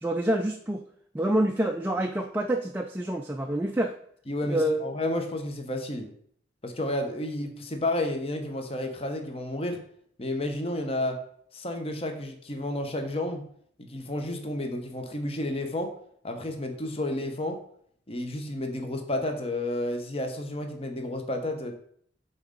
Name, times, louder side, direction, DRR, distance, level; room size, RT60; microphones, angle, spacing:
voice 1, 0.0-0.8 1.1-3.9 4.4-4.8, right 1 dB, 10° right, 3 dB, 0.3 m, -27 dB
voice 2, 4.3-6.1 6.6-9.8 10.2-11.2 11.5-13.5 13.8-15.9 16.2-17.6 18.1-21.7, left 1 dB, 30° left, 5 dB, 0.8 m, -31 dB
5.8 x 4.0 x 5.1 m, 0.64 s
head